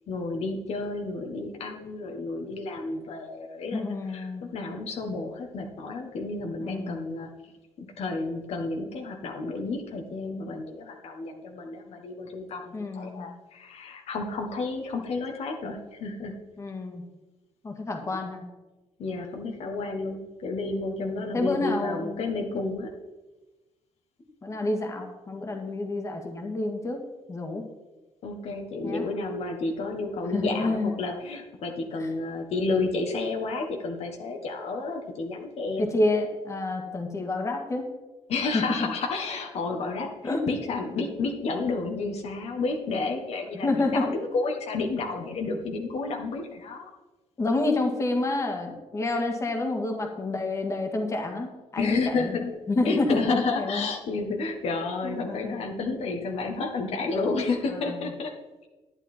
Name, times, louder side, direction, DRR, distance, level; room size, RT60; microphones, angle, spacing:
voice 1, 0.1-7.3 7.8-16.3 19.0-22.9 28.2-35.9 38.3-46.9 51.8-52.5 52.8-58.3, left 3 dB, 60° left, 2 dB, 1.4 m, -31 dB
voice 2, 3.7-4.5 6.6-7.1 12.7-13.3 16.6-17.0 17.6-18.4 21.0-22.5 24.4-27.0 27.3-27.6 28.8-29.1 30.3-31.0 32.0-32.1 35.8-37.9 38.5-38.6 40.2-40.4 41.0-41.1 43.5-44.1 47.4-52.4 52.7-53.9 55.0-55.6 57.7-58.1, left 2 dB, 25° left, 3 dB, 1.8 m, -29 dB
11.5 x 9.7 x 4.4 m, 1.1 s
cardioid pair, 130°, 12 cm